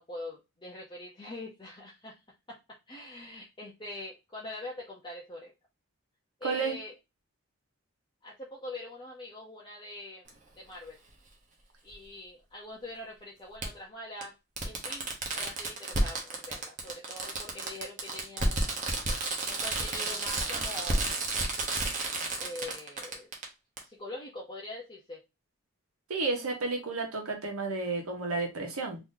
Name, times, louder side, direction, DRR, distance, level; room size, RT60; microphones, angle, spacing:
voice 1, 0.0-2.2 2.5-2.6 2.9-5.5 6.4-6.9 8.2-10.2 10.6-11.0 11.8-14.3 14.6-18.8 19.5-21.2 22.4-23.3 23.8-25.2, left 1 dB, 20° left, -3 dB, 0.6 m, -43 dB
voice 2, 6.4-6.7 26.1-29.0, right 3 dB, 90° right, 2 dB, 1.2 m, -31 dB
Fireworks, 10.3-10.4 11.9-12.0 13.6-13.7 14.2-14.3 14.6-23.4 23.8-23.9, right 2 dB, 35° right, 0.8 m, -31 dB
3.0 x 2.7 x 3.7 m, 0.24 s
head